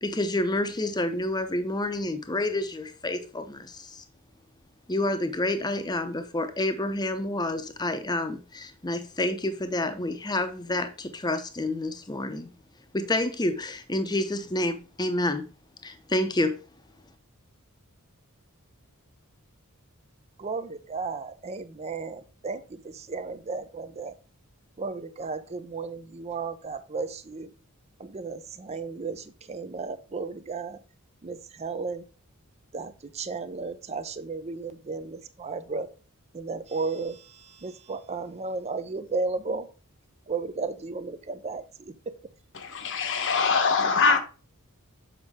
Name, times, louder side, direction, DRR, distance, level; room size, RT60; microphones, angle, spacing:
voice 1, 0.0-4.0 4.9-12.5 12.9-15.5 15.8-16.6, left 1 dB, 20° left, 0.8 m, -29 dB
voice 2, 20.4-22.6 23.1-24.1 24.8-27.5 28.0-30.8 31.2-32.0 32.7-35.9 36.3-37.2 37.6-39.7 40.3-41.6, right 4 dB, 30° right, 0.5 m, -34 dB
voice 3, 42.5-44.2, left 5 dB, 55° left, 1.1 m, -23 dB
7.2 x 5.2 x 3.6 m
head